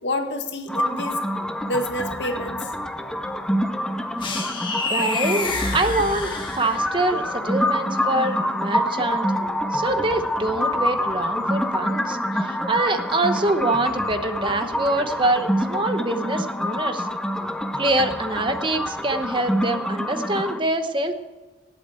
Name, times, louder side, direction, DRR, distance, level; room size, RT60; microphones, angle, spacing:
voice 1, 0.0-1.2 1.6-2.7, left 1 dB, 75° left, 5 dB, 1.7 m, -28 dB
sound 1, 0.7-20.6, equal, 5° left, 0.6 m, -26 dB
sound 2, 4.2-7.1, left 3 dB, 25° left, 1.5 m, -28 dB
voice 2, 4.9-9.3 9.7-17.1 17.8-21.1, right 2 dB, 25° right, 8 dB, 0.9 m, -25 dB
18.5 x 8.2 x 4.4 m, 1.2 s
head